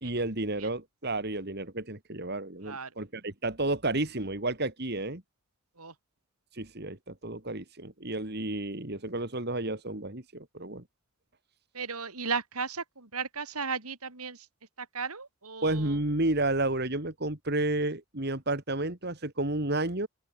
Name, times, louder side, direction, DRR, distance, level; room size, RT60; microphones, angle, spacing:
voice 1, 0.0-5.2 6.5-10.8 15.6-20.1, right 2 dB, 45° right, 2.7 m, -31 dB
voice 2, 11.7-14.4 14.9-15.8, right 5 dB, 85° right, 3.8 m, -35 dB
open air
head